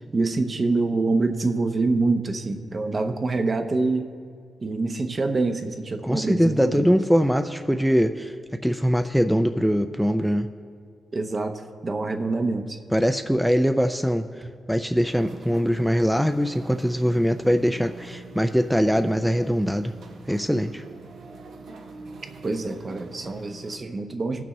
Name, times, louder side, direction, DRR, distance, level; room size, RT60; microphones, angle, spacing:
voice 1, 0.1-4.1 4.6-6.9 11.1-12.8 14.4-14.5 22.4-24.4, right 3 dB, 40° right, 6 dB, 0.7 m, -26 dB
voice 2, 6.0-8.3 8.6-10.5 12.9-19.9 20.3-20.8, equal, ahead, 7 dB, 0.3 m, -22 dB
sound 1, 15.0-23.8, right 3 dB, 80° right, 0.8 m, -44 dB
18.0 x 6.1 x 3.0 m, 2.3 s
cardioid pair, 90°, 0 cm